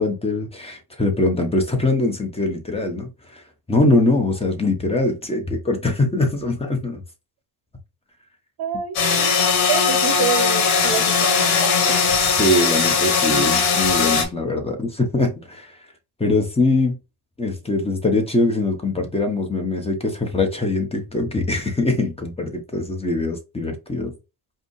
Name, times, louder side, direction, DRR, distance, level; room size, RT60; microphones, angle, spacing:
voice 1, 0.0-3.4 3.7-7.0 12.2-15.8 16.2-17.0 17.4-24.1, left 2 dB, 10° left, 1.2 m, -22 dB
voice 2, 8.6-9.3 9.7-12.0, right 8 dB, 55° right, 0.8 m, -28 dB
sound 1, 9.0-14.2, left 5 dB, 90° left, 1.6 m, -19 dB
5.1 x 2.5 x 3.3 m
cardioid pair, 110°, 48 cm